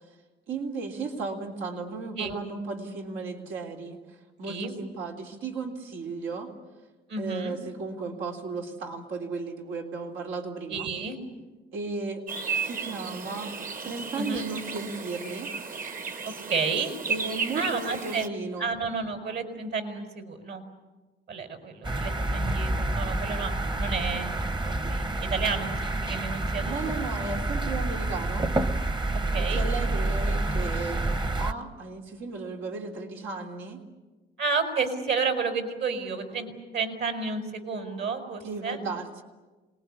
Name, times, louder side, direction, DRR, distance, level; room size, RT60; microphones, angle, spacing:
voice 1, 0.5-6.5 7.2-10.9 11.7-12.2 12.5-13.5 13.8-15.5 17.1-18.7 26.6-28.5 29.4-33.8 38.4-39.2, right 4 dB, 85° right, 1 dB, 3.4 m, -35 dB
voice 2, 4.4-4.7 7.1-7.6 10.7-11.2 14.2-14.5 16.5-16.9 17.5-18.3 18.6-20.6 21.3-24.3 24.6-27.0 29.3-29.6 34.4-38.8, right 4 dB, 60° right, 7 dB, 4.7 m, -31 dB
sound 1, 12.3-18.3, right 5 dB, 45° right, 1.6 m, -34 dB
sound 2, 21.8-31.5, right 2 dB, 20° right, 1.1 m, -28 dB
27.5 x 20.5 x 9.9 m, 1.2 s
cardioid pair, 90°, 20 cm